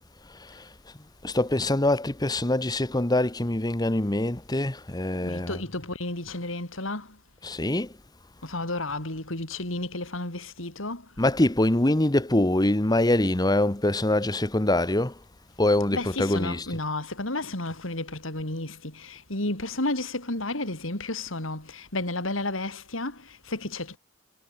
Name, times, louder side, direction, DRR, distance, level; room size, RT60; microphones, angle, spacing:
voice 1, 1.2-5.6 7.4-7.9 11.2-15.1 15.6-16.8, left 1 dB, 20° left, 1.2 m, -24 dB
voice 2, 5.2-7.2 8.4-11.5 15.9-24.0, left 2 dB, 80° left, 5.2 m, -32 dB
head